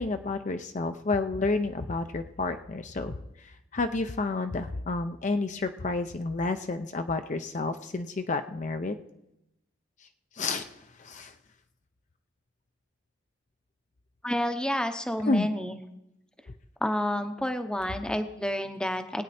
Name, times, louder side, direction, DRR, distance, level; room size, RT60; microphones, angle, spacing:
voice 1, 0.0-9.0 10.3-11.3 15.3-15.5, left 3 dB, 40° left, 7 dB, 0.5 m, -30 dB
voice 2, 14.2-15.8 16.8-19.2, left 1 dB, 5° left, 8 dB, 0.8 m, -29 dB
21.0 x 8.8 x 4.2 m, 0.89 s
head